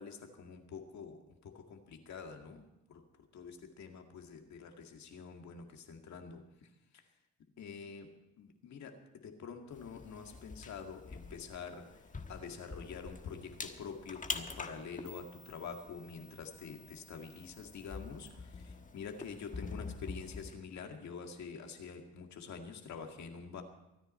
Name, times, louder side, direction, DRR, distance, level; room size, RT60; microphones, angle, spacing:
voice 1, 0.0-3.0 3.3-6.7 7.6-8.1 8.4-12.0 12.3-23.6, left 5 dB, 65° left, 4 dB, 2.1 m, -47 dB
sound 1, 9.7-20.5, left 4 dB, 25° left, 1.3 m, -46 dB
24.0 x 9.7 x 4.3 m, 0.92 s
cardioid pair, 90°, 30 cm